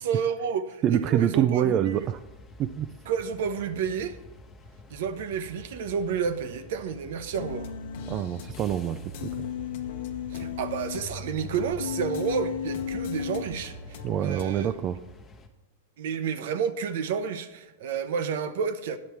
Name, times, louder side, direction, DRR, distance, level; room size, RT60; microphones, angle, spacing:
voice 1, 0.0-2.1 3.1-4.2 4.9-7.7 10.3-14.7 16.0-19.0, right 7 dB, 65° right, 0.8 m, -30 dB
voice 2, 0.8-2.2 2.6-2.9 8.1-9.4 14.0-15.0, right 10 dB, 35° right, 0.4 m, -26 dB
sound 1, 1.9-15.5, left 2 dB, 20° left, 1.0 m, -50 dB
sound 2, 7.3-14.5, left 2 dB, 65° left, 0.9 m, -42 dB
Human voice, 7.4-8.2 9.2-11.0 11.8-13.4, left 9 dB, 90° left, 0.4 m, -34 dB
9.7 x 7.0 x 4.5 m
hypercardioid pair, 125°, 0 cm